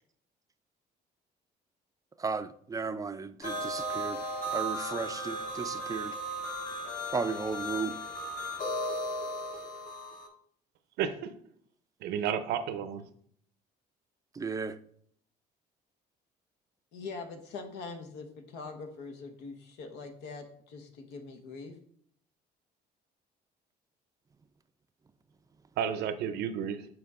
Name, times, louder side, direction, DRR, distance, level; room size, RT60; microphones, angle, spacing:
voice 1, 2.2-4.2 4.5-6.1 7.1-8.0 14.4-14.8, right 5 dB, 20° right, 0.4 m, -34 dB
sound 1, 3.4-10.3, equal, 50° left, 1.6 m, -36 dB
voice 2, 11.0-11.3 12.0-13.1 25.8-26.9, right 8 dB, 80° right, 0.7 m, -32 dB
voice 3, 16.9-21.7, left 4 dB, 90° left, 1.2 m, -43 dB
8.0 x 4.6 x 3.7 m
cardioid pair, 110°, 17 cm